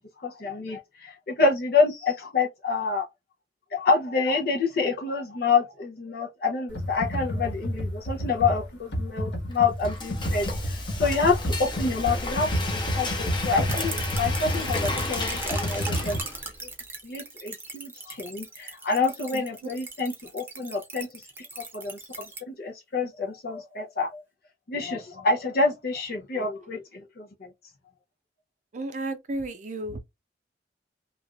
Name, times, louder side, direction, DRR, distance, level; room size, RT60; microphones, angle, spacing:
voice 1, 0.2-3.0 3.7-12.6 12.9-16.2 17.0-21.2 21.6-22.0 22.5-24.2 24.7-27.5, left 4 dB, 60° left, 0.6 m, -27 dB
Computer keyboard, 6.7-16.2, equal, 80° left, 1.3 m, -30 dB
Frying (food), 9.5-16.6, left 2 dB, 25° left, 0.8 m, -33 dB
sound 1, 13.7-22.4, right 3 dB, 10° right, 0.8 m, -38 dB
voice 2, 28.7-30.0, right 2 dB, 45° right, 0.5 m, -33 dB
3.2 x 2.4 x 2.3 m
head